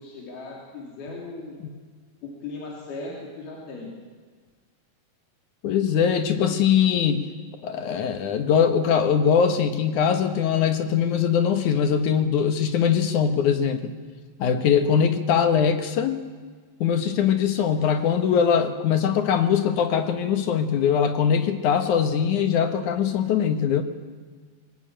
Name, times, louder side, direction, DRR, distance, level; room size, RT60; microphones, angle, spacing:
voice 1, 0.0-1.6 2.2-3.9, left 3 dB, 85° left, -2 dB, 5.1 m, -37 dB
voice 2, 5.6-7.3 7.6-13.9 14.4-16.2 16.8-23.8, left 7 dB, 65° left, 8 dB, 2.4 m, -22 dB
23.5 x 19.5 x 8.9 m, 1.5 s
omnidirectional pair, 4.2 m